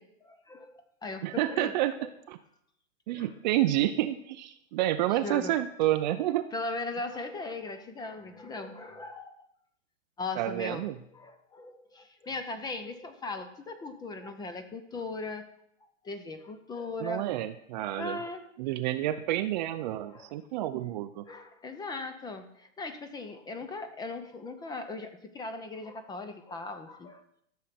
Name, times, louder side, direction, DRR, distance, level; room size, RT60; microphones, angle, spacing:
voice 1, 0.0-1.7 2.0-2.1 3.1-3.3 5.2-5.5 6.5-9.3 10.2-10.8 11.1-15.4 16.0-17.5 17.7-18.4 20.0-20.3 21.3-27.2, left 3 dB, 10° left, 9 dB, 0.7 m, -38 dB
voice 2, 1.2-2.0 2.3-2.4 3.1-6.5 10.4-11.0 17.0-18.2 18.6-21.2, right 14 dB, 35° right, 10 dB, 0.6 m, -29 dB
13.5 x 6.7 x 5.9 m, 0.72 s
hypercardioid pair, 135°, 39 cm